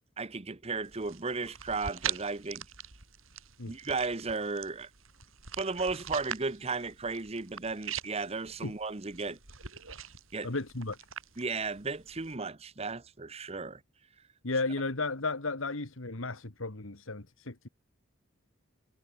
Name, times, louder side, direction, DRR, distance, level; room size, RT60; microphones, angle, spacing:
voice 1, 0.2-2.7 3.7-4.9 5.6-9.4 10.3-10.5 11.4-13.8, right 4 dB, 30° right, 1.0 m, -35 dB
sound 1, 0.8-12.3, right 8 dB, 85° right, 5.8 m, -43 dB
voice 2, 10.4-11.0 14.4-17.7, left 3 dB, 80° left, 2.0 m, -34 dB
head